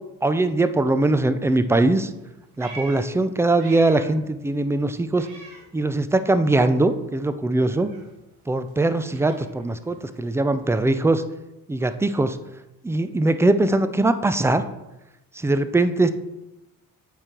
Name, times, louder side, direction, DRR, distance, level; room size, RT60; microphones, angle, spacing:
voice 1, 0.2-2.1 2.6-5.3 5.7-7.9 8.5-11.2 11.7-12.4 12.8-14.7 15.4-16.1, right 2 dB, 5° right, 11 dB, 0.4 m, -21 dB
Meow, 2.1-4.3 4.6-6.3 6.6-10.7, right 3 dB, 80° right, 1.2 m, -46 dB
8.8 x 3.7 x 3.0 m, 0.95 s
hypercardioid pair, 45°, 45 cm